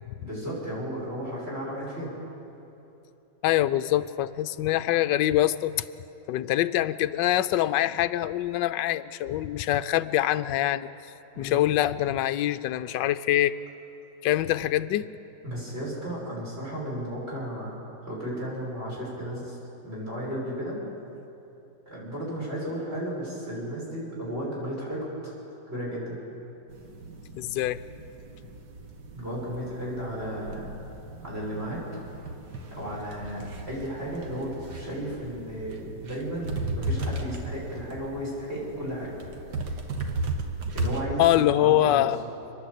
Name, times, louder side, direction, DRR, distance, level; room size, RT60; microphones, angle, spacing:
voice 1, 0.2-2.1 11.3-11.6 15.4-17.8 18.1-19.6 19.8-20.8 21.9-25.3 25.7-26.2 29.1-30.7 31.2-31.8 32.7-39.1 40.7-42.1, equal, 30° right, -6 dB, 6.2 m, -34 dB
voice 2, 3.4-5.8 6.3-10.9 11.4-13.6 14.2-15.1 27.3-27.8 41.2-42.2, left 13 dB, 75° left, 11 dB, 1.2 m, -24 dB
sound 1, 26.7-41.0, right 2 dB, 65° right, 1.9 m, -36 dB
29.5 x 10.5 x 8.3 m, 2.9 s
omnidirectional pair, 2.1 m